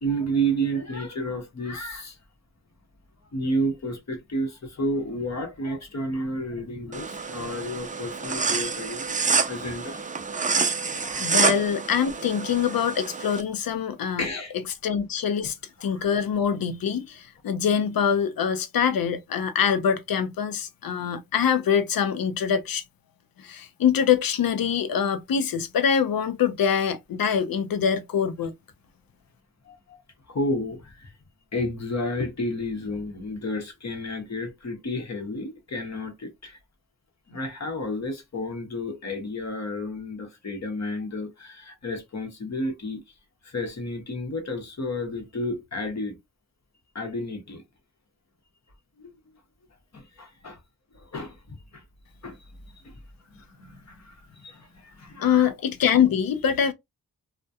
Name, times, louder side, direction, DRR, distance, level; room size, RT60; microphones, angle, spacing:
voice 1, 0.0-2.2 3.3-9.2 9.5-10.1 10.8-11.3 14.2-14.5 15.4-15.5 15.8-16.1 29.6-30.0 30.3-31.1 31.5-36.6 37.3-43.0 43.4-46.1 46.9-47.6 49.0-49.1 49.9-50.6 50.9-51.8 52.2-52.4 52.8-53.0 53.4-55.5, equal, 45° left, 0.9 m, -31 dB
sound 1, 6.9-13.4, right 5 dB, 25° right, 0.3 m, -27 dB
voice 2, 11.2-14.3 14.8-15.6 15.8-22.8 23.4-28.5 55.2-56.7, left 7 dB, 70° left, 0.5 m, -24 dB
2.3 x 2.1 x 2.7 m
cardioid pair, 65°, 37 cm